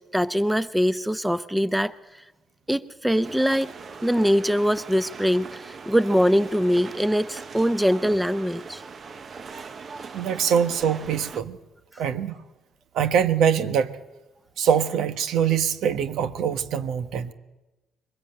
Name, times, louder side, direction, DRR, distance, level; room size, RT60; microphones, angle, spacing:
voice 1, 0.1-1.9 2.7-3.7 4.0-8.8, equal, 5° right, 14 dB, 0.9 m, -22 dB
sound 1, 3.2-11.4, right 5 dB, 50° right, 1.1 m, -40 dB
voice 2, 10.1-11.6 12.0-12.4 12.9-14.0 14.6-17.3, right 8 dB, 80° right, 10 dB, 1.3 m, -23 dB
23.0 x 20.5 x 9.0 m, 1.1 s
cardioid pair, 90°, 0 cm